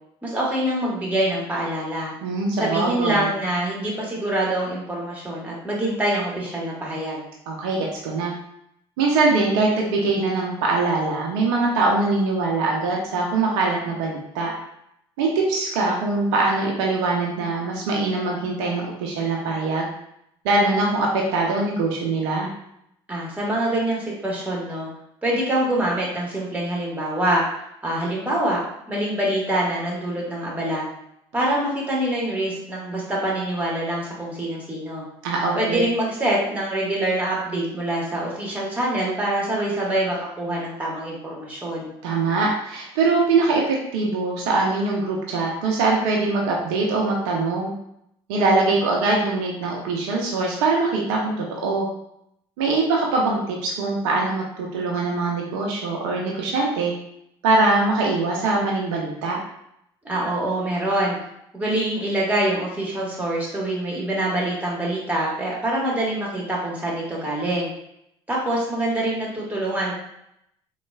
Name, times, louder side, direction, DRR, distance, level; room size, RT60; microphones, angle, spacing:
voice 1, 0.2-2.1 2.6-7.2 23.1-24.9 25.2-27.4 27.8-28.6 28.9-30.8 31.3-35.0 35.5-41.9 60.0-61.2 61.5-67.7 68.3-69.9, right 1 dB, 10° right, -3 dB, 1.4 m, -25 dB
voice 2, 2.2-3.3 7.5-8.3 9.0-14.5 15.2-19.9 20.4-22.5 35.2-35.8 42.0-47.7 48.3-51.9 52.6-56.9 57.4-59.4, right 3 dB, 75° right, -1 dB, 0.6 m, -22 dB
3.9 x 2.3 x 2.3 m, 0.77 s
hypercardioid pair, 60°, 14 cm